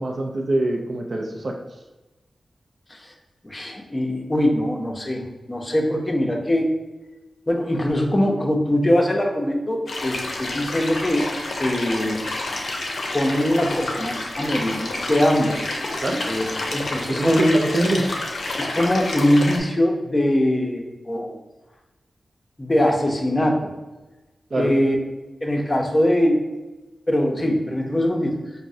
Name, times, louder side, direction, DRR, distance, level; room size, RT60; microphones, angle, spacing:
voice 1, 0.0-1.5 16.0-16.3 17.1-18.1 24.5-24.7, right 1 dB, 55° right, 2 dB, 0.4 m, -24 dB
voice 2, 3.4-6.7 7.5-11.2 11.6-12.2 13.1-15.6 16.3-16.5 16.7-17.6 18.6-21.4 22.6-23.7 24.6-25.0 25.4-26.4 27.1-28.6, left 1 dB, 25° left, 2 dB, 0.6 m, -22 dB
sound 1, 9.9-19.6, left 2 dB, 70° left, 0.5 m, -29 dB
4.5 x 2.0 x 2.6 m, 1.1 s
cardioid pair, 55°, 0 cm